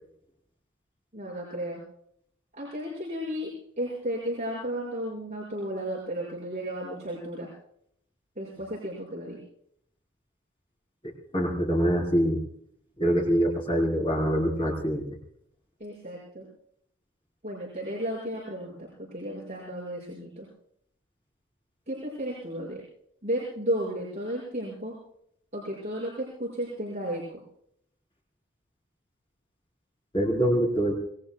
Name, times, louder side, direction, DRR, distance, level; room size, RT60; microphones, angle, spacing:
voice 1, 1.1-1.8 2.5-7.5 8.4-9.4 15.8-16.5 17.4-20.5 21.9-22.8 23.2-24.9 25.5-27.4, equal, 35° right, -7 dB, 5.9 m, -33 dB
voice 2, 11.3-12.4 13.0-15.0 30.1-30.9, equal, 25° left, -1 dB, 4.3 m, -24 dB
26.5 x 21.0 x 2.3 m, 0.69 s
head